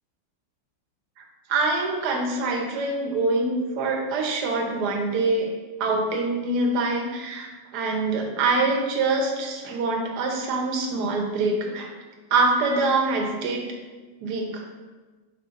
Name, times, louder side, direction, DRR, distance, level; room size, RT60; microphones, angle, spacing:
voice 1, 1.5-5.5 5.8-11.9 12.3-13.6 14.2-14.6, right 3 dB, 60° right, 2 dB, 1.3 m, -25 dB
5.2 x 4.9 x 4.0 m, 1.3 s
omnidirectional pair, 2.2 m